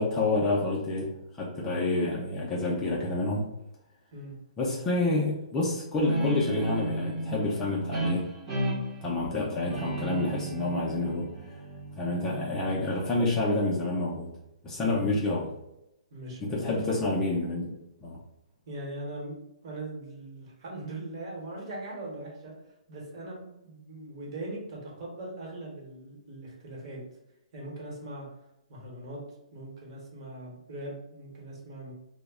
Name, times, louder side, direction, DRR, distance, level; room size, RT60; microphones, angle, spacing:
voice 1, 0.0-3.5 4.6-8.3 9.0-11.3 12.0-14.3 14.6-15.5 16.4-17.7 18.0-18.2, left 2 dB, 15° left, -5 dB, 0.4 m, -28 dB
Guitar, 6.0-13.1, right 1 dB, 20° right, 0.6 m, -34 dB
voice 2, 16.1-16.9 18.7-19.4 19.6-22.5 22.9-27.0 27.5-28.3 28.7-29.2 29.5-31.9, right 1 dB, 40° right, -3 dB, 1.0 m, -40 dB
2.2 x 2.0 x 3.4 m, 0.85 s
hypercardioid pair, 160°, 4 cm